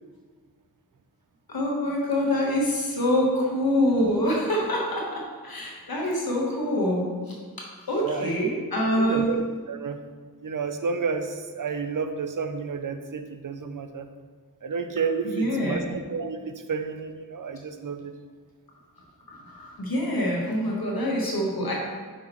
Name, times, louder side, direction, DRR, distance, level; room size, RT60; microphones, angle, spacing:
voice 1, 1.5-9.3 15.2-16.0 19.3-21.7, equal, 70° left, -2 dB, 1.3 m, -26 dB
voice 2, 8.0-8.5 9.0-10.0 10.4-14.1 14.6-18.1, right 5 dB, 55° right, 8 dB, 0.6 m, -31 dB
6.1 x 5.9 x 3.0 m, 1.5 s
wide cardioid pair, 45°, 37 cm